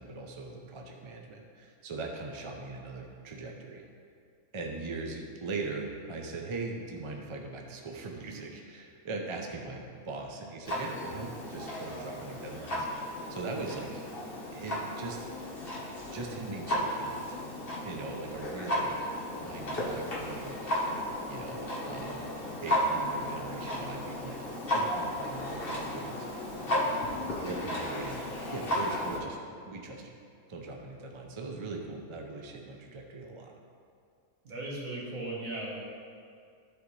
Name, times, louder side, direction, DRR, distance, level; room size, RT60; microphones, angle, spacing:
voice 1, 0.0-3.8 4.5-14.0 14.5-15.3 16.0-17.4 17.8-19.1 19.4-20.7 21.3-22.2 22.5-28.3 28.5-29.4 29.7-30.2 30.5-33.5, right 3 dB, 40° right, 1 dB, 0.4 m, -40 dB
Clock, 10.7-29.2, equal, 40° left, 1.4 m, -34 dB
voice 2, 34.4-35.8, right 2 dB, 70° right, -4 dB, 1.9 m, -37 dB
12.5 x 4.2 x 3.2 m, 2.3 s
omnidirectional pair, 1.5 m